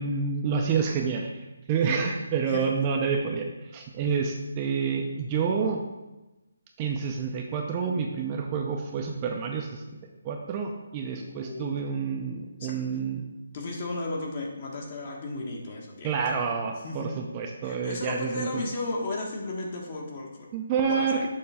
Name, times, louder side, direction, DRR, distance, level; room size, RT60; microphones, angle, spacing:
voice 1, 0.0-1.3 1.7-3.5 3.7-5.8 6.8-9.8 10.2-13.2 16.0-18.6 20.5-21.3, right 6 dB, 20° right, 1 dB, 0.5 m, -28 dB
voice 2, 2.5-2.9 11.2-11.8 12.6-12.7 13.5-16.1 16.8-17.1 17.6-20.5 20.9-21.2, left 2 dB, 35° left, 0 dB, 1.2 m, -34 dB
6.7 x 3.2 x 5.5 m, 1.1 s
hypercardioid pair, 165°, 0 cm